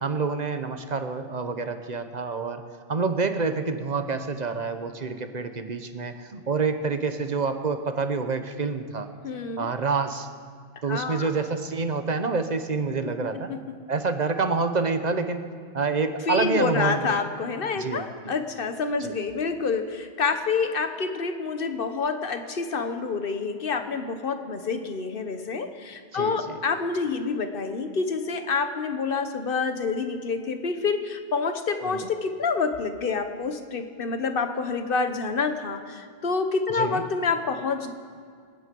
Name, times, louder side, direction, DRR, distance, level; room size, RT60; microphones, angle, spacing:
voice 1, 0.0-2.6 2.9-9.1 9.6-10.3 10.8-13.5 13.9-15.4 15.7-17.2 17.7-18.3 19.0-19.1 26.1-26.6 31.8-32.1 36.7-37.0, right 4 dB, 45° right, 8 dB, 1.0 m, -27 dB
voice 2, 9.2-9.7 10.9-11.3 13.5-13.6 16.3-37.9, left 4 dB, 60° left, 8 dB, 1.3 m, -28 dB
26.5 x 9.6 x 5.3 m, 2.1 s
omnidirectional pair, 1.1 m